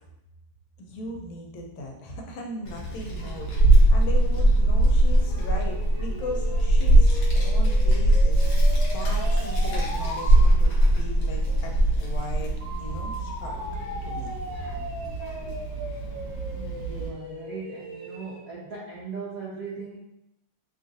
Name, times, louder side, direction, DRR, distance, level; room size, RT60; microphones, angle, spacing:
voice 1, 0.8-3.5 3.9-8.5 8.9-12.5 12.8-13.6 14.0-14.3, left 1 dB, 80° left, 1 dB, 1.4 m, -38 dB
Child speech kid speaking, 2.6-17.1, right 1 dB, 60° left, 1.0 m, -21 dB
sound 1, 5.2-10.4 12.6-18.5, equal, 60° right, 1.1 m, -39 dB
voice 2, 15.7-16.1 16.5-20.0, right 4 dB, 75° right, -6 dB, 0.8 m, -39 dB
3.4 x 2.4 x 2.6 m, 0.83 s
omnidirectional pair, 2.2 m